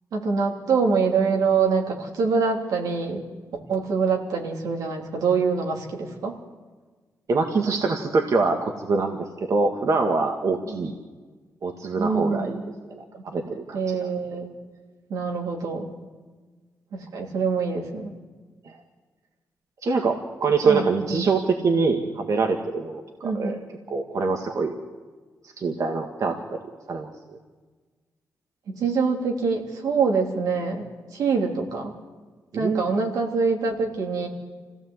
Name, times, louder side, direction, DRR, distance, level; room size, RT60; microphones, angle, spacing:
voice 1, 0.1-3.3 3.7-6.3 10.7-10.8 12.0-12.6 13.1-14.5 15.1-15.9 16.9-18.1 20.6-21.3 23.2-23.6 28.7-31.9 32.5-34.3, right 5 dB, 85° right, 1 dB, 3.2 m, -25 dB
voice 2, 7.3-10.9 11.6-12.6 12.9-13.0 13.3-14.1 18.7-18.8 19.8-23.6 23.9-24.8 25.6-26.6 26.9-27.1 32.5-32.9, right 4 dB, 60° right, 3 dB, 1.9 m, -24 dB
26.0 x 16.5 x 8.1 m, 1.4 s
cardioid pair, 75°, 6 cm